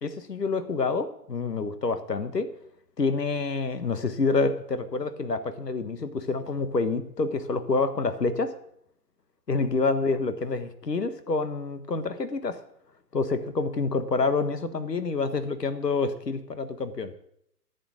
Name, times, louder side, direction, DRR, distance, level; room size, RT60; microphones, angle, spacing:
voice 1, 0.0-2.5 3.0-8.5 9.5-12.6 13.1-17.1, left 3 dB, 80° left, 10 dB, 1.6 m, -27 dB
11.5 x 8.3 x 6.2 m, 0.73 s
figure-of-eight pair, 135°, 48 cm